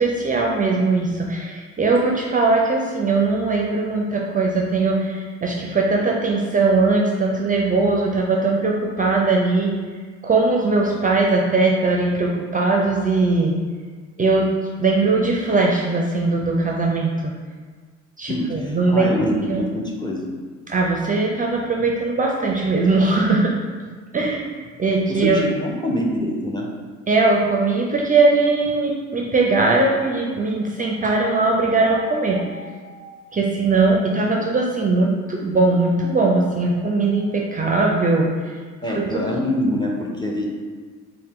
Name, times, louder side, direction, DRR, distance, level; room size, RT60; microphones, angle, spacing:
voice 1, 0.0-9.7 10.2-13.5 14.2-14.5 14.8-17.3 18.2-19.7 20.7-23.6 24.1-24.5 24.8-25.5 27.1-38.6 38.9-39.2, right 3 dB, 25° right, -1 dB, 0.4 m, -20 dB
voice 2, 18.3-20.4 25.1-26.7 38.8-40.4, left 1 dB, 15° left, -2 dB, 0.6 m, -25 dB
4.2 x 2.1 x 3.6 m, 1.5 s
cardioid pair, 90°, 30 cm